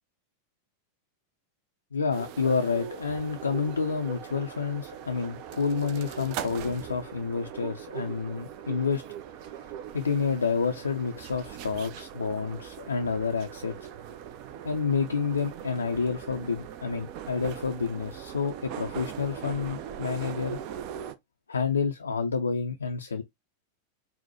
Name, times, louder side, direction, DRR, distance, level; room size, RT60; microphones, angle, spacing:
voice 1, 1.9-9.0 9.9-13.7 14.6-20.6 21.5-23.2, left 5 dB, 75° left, 0.3 m, -29 dB
sound 1, 2.1-21.1, right 9 dB, 45° right, 0.4 m, -40 dB
4.1 x 2.1 x 2.7 m
figure-of-eight pair, 90°, 0 cm